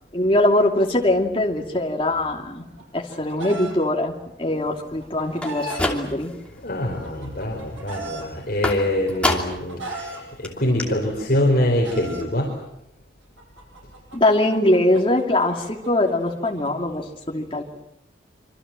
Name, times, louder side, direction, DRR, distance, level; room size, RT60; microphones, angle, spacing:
voice 1, 0.1-2.7 2.9-6.3 14.1-17.6, left 1 dB, 25° left, 1 dB, 2.7 m, -22 dB
Chicken rooster, 2.6-3.7 4.8-5.9 6.8-8.2 9.1-10.2 11.2-12.2 13.4-16.7, right 2 dB, 85° right, 7.6 m, -36 dB
sound 1, 5.3-6.5 6.9-7.4 8.6-9.7 10.1-10.2 10.4-10.5 10.8-10.9, left 1 dB, 5° left, 2.8 m, -27 dB
voice 2, 6.6-12.5, left 1 dB, 50° left, -1 dB, 4.6 m, -24 dB
26.5 x 25.5 x 7.6 m, 0.86 s
head